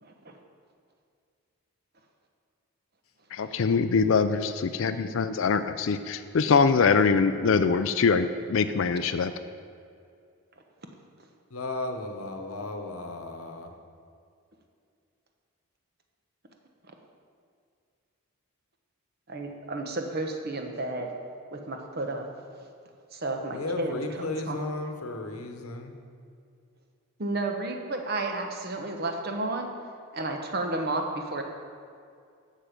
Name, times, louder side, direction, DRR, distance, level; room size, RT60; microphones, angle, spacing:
voice 1, 0.0-0.4 16.9-17.0 19.3-21.1 21.5-22.3 23.1-24.6 27.2-29.7 30.1-31.4, right 2 dB, 45° right, 3 dB, 1.0 m, -32 dB
voice 2, 3.3-9.3, left 5 dB, 60° left, 10 dB, 0.4 m, -23 dB
voice 3, 11.5-13.7 23.5-26.0, left 2 dB, 75° left, 5 dB, 1.0 m, -34 dB
11.5 x 7.5 x 5.2 m, 2.3 s
head